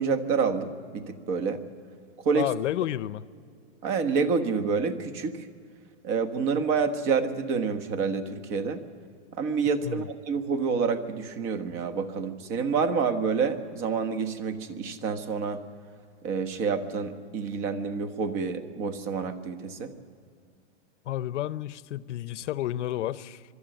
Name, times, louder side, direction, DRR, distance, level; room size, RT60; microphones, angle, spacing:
voice 1, 0.0-1.6 2.2-2.5 3.8-5.5 6.0-8.8 9.3-15.6 16.2-19.9, right 5 dB, 35° right, 10 dB, 1.4 m, -28 dB
voice 2, 2.3-3.2 9.8-10.1 21.1-23.4, left 13 dB, 75° left, 17 dB, 0.8 m, -31 dB
22.5 x 13.0 x 9.1 m, 2.3 s
hypercardioid pair, 145°, 36 cm